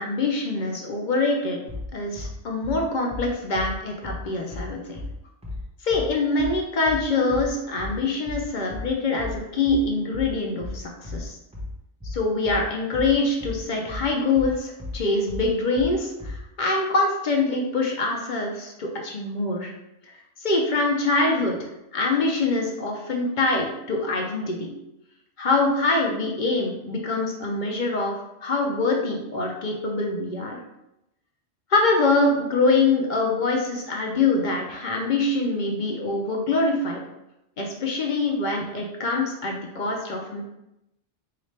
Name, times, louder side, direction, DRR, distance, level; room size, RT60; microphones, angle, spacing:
voice 1, 0.0-1.6 1.9-5.0 5.8-11.3 12.1-19.7 20.4-24.7 25.4-28.1 28.4-30.6 31.7-37.0 37.6-40.4, left 3 dB, 55° left, 1 dB, 0.6 m, -24 dB
sound 1, 1.7-16.5, left 2 dB, 5° right, 0.5 m, -35 dB
4.2 x 2.4 x 3.2 m, 0.87 s
omnidirectional pair, 1.2 m